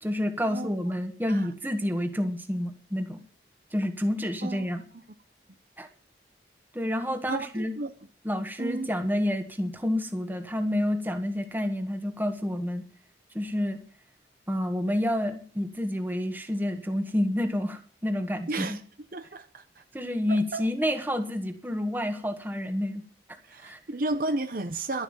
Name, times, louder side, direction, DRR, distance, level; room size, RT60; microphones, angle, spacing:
voice 1, 0.0-3.2 3.7-4.8 5.8-5.9 6.7-7.7 8.2-12.8 13.3-13.8 14.5-18.8 19.9-23.0 23.6-23.8, left 1 dB, 10° right, 1.6 m, -29 dB
voice 2, 7.3-7.9 8.6-8.9 18.5-18.8 19.1-19.8 20.3-20.6 23.5-25.0, right 2 dB, 50° right, 0.8 m, -32 dB
12.0 x 11.5 x 7.3 m
head